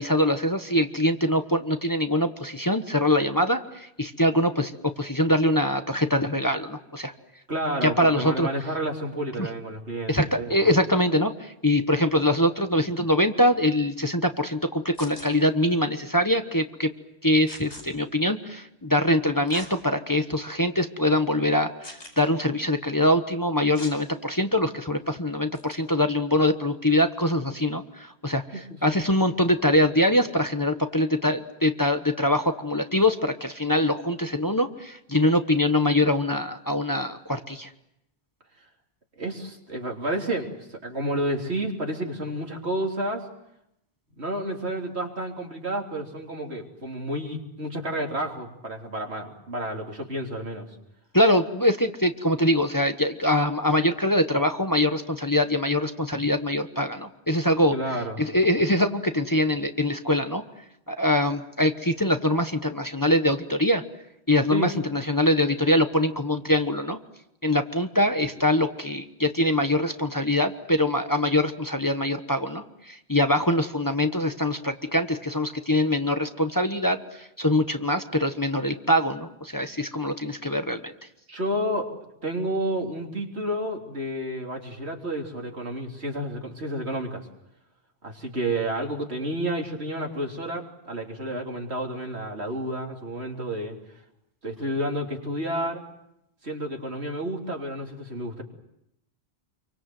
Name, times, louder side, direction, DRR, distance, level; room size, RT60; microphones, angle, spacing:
voice 1, 0.0-7.1 7.8-8.5 9.4-9.5 10.1-16.9 17.2-37.7 51.1-57.8 58.2-60.4 60.9-63.8 64.3-67.0 67.4-80.9, left 1 dB, 20° left, 7 dB, 1.2 m, -23 dB
voice 2, 7.5-10.5 28.5-29.0 39.2-43.3 44.2-50.7 57.7-58.2 64.5-64.7 81.3-81.9 82.2-87.3 88.0-93.8 94.4-95.8 96.4-98.4, right 1 dB, 80° right, 1 dB, 3.6 m, -30 dB
sound 1, 14.9-15.3 17.5-17.8 19.5-19.7 20.3-20.4 21.8-22.2 23.7-24.0 25.5-25.7, left 1 dB, 85° left, 5.1 m, -40 dB
27.5 x 24.0 x 7.8 m, 0.81 s
omnidirectional pair, 1.1 m